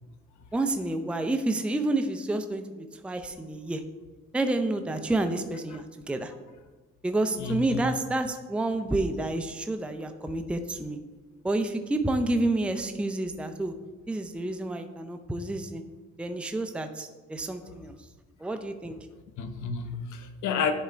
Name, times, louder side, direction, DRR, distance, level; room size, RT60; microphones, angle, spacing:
voice 1, 0.5-3.8 4.3-6.3 7.0-11.0 11.4-13.7 14.1-15.8 16.2-17.9 18.4-19.0, right 2 dB, 5° right, 7 dB, 0.5 m, -29 dB
voice 2, 7.4-7.8 19.4-20.7, left 6 dB, 75° left, 8 dB, 0.9 m, -31 dB
10.5 x 3.6 x 4.4 m, 1.3 s
cardioid pair, 90°, 30 cm